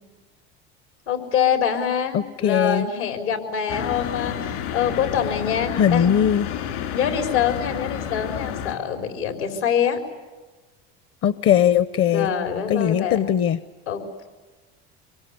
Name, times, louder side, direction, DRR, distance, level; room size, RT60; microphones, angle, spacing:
voice 1, 1.1-6.1 6.9-10.0 12.1-13.2 13.9-14.3, left 8 dB, 85° left, 5 dB, 4.3 m, -25 dB
voice 2, 2.1-2.9 5.7-6.5 11.2-12.3 12.7-13.6, left 9 dB, 45° left, 15 dB, 0.8 m, -20 dB
sound 1, 3.7-8.7, left 9 dB, 70° left, 3.8 m, -30 dB
25.0 x 23.0 x 9.6 m, 1.2 s
hypercardioid pair, 80°, 33 cm